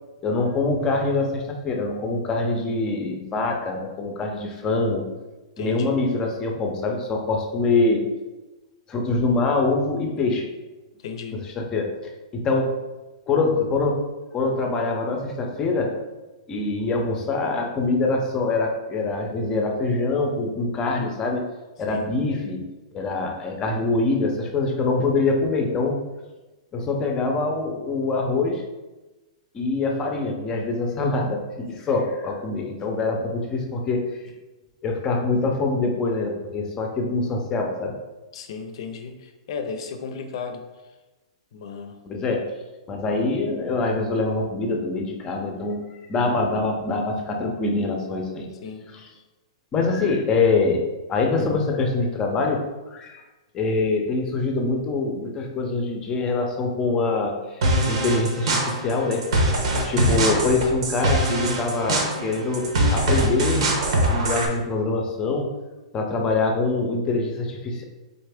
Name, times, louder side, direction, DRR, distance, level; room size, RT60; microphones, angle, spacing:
voice 1, 0.2-5.1 5.6-8.1 8.9-10.5 11.3-11.9 12.3-12.8 13.3-14.0 14.3-15.9 16.5-21.5 21.8-22.7 22.9-26.0 26.7-28.6 29.5-34.1 34.8-37.9 42.0-42.4 42.9-45.8 46.1-48.5 49.7-50.8 51.1-53.2 53.5-59.2 59.8-63.7 64.1-65.5 65.9-67.8, left 3 dB, 20° left, 2 dB, 0.6 m, -24 dB
voice 2, 5.6-5.9 11.0-11.4 21.9-22.1 38.3-40.6 41.5-42.0 48.6-48.8, left 5 dB, 60° left, 7 dB, 0.6 m, -34 dB
sound 1, 57.6-64.5, right 1 dB, 70° right, 1.0 m, -23 dB
4.1 x 3.3 x 3.5 m, 1.1 s
hypercardioid pair, 150°, 3 cm